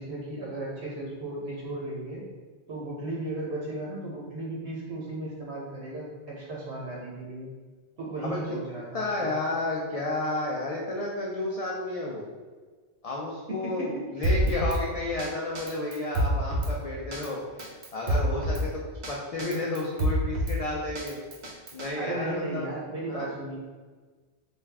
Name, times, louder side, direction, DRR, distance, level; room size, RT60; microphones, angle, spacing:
voice 1, 0.0-2.2 2.7-7.5 8.0-9.4 13.5-14.3 21.9-23.6, right 2 dB, 75° right, -5 dB, 1.0 m, -35 dB
voice 2, 8.9-12.3 13.0-17.6 17.9-18.8 19.1-21.2 21.7-22.7 23.1-23.3, left 2 dB, 65° left, -3 dB, 0.3 m, -31 dB
Drum kit, 14.2-14.8 15.2-15.3 15.6-16.7 17.1-17.3 17.6-18.6 19.0-19.1 19.4-20.6 21.0-21.9, right 1 dB, 50° right, 0.6 m, -27 dB
3.4 x 2.3 x 3.3 m, 1.4 s
omnidirectional pair, 1.2 m